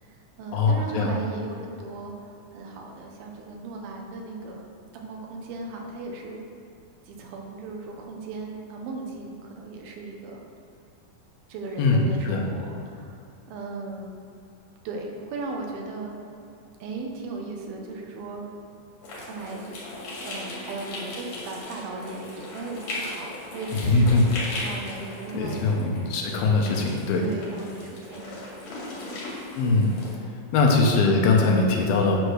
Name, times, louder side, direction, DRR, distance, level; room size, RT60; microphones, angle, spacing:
voice 1, 0.0-4.6 4.9-6.4 7.1-10.4 11.5-13.2 13.5-14.2 14.8-16.2 16.8-18.5 19.2-19.9 20.2-25.9 27.1-28.7 29.0-29.2, right 3 dB, 80° right, 1 dB, 3.0 m, -37 dB
voice 2, 0.5-1.1 11.8-12.5 23.7-24.2 25.3-27.2 29.5-29.9 30.5-32.2, left 3 dB, 85° left, 0 dB, 2.9 m, -21 dB
sound 1, 19.0-30.1, left 2 dB, 65° left, 3.6 m, -38 dB
9.3 x 4.9 x 6.4 m, 2.7 s
omnidirectional pair, 4.2 m